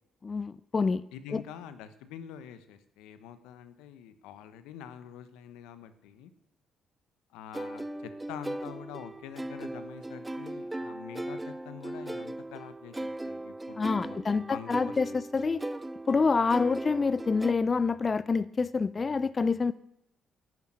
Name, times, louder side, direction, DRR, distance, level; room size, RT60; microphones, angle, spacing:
voice 1, 0.2-1.0 1.3-1.4 13.8-15.6 16.1-19.7, left 4 dB, 35° left, 17 dB, 0.5 m, -27 dB
voice 2, 1.1-6.3 7.3-14.8 15.1-15.2, left 9 dB, 80° left, 12 dB, 1.1 m, -46 dB
sound 1, 7.5-17.5, right 1 dB, 15° right, 0.8 m, -38 dB
11.0 x 11.0 x 7.6 m, 0.80 s
hypercardioid pair, 50°, 0 cm